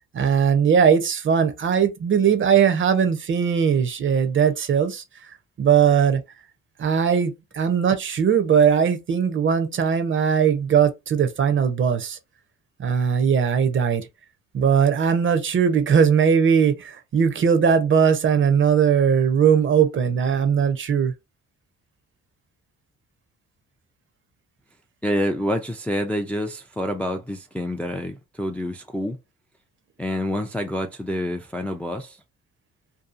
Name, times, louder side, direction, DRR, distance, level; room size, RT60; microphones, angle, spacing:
voice 1, 0.1-5.0 5.6-6.2 6.8-12.2 12.8-14.1 14.5-21.1, right 7 dB, 40° right, 0.6 m, -19 dB
voice 2, 25.0-29.2 30.0-32.2, equal, 5° left, 0.3 m, -27 dB
2.7 x 2.4 x 2.4 m
cardioid pair, 90°, 30 cm